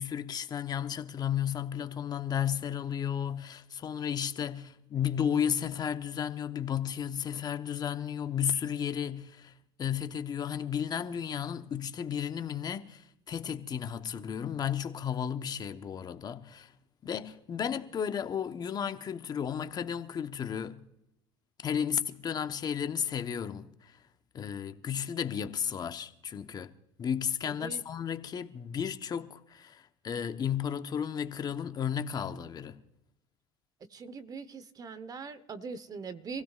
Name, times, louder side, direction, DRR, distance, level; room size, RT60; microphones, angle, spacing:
voice 1, 0.0-9.5 9.8-16.7 17.0-20.8 21.6-24.0 24.3-26.7 27.0-32.8, left 8 dB, 40° left, 1.1 m, -33 dB
voice 2, 27.5-27.8 33.9-36.4, right 5 dB, 35° right, 1.2 m, -41 dB
26.5 x 16.0 x 2.5 m
supercardioid pair, 85°, 11 cm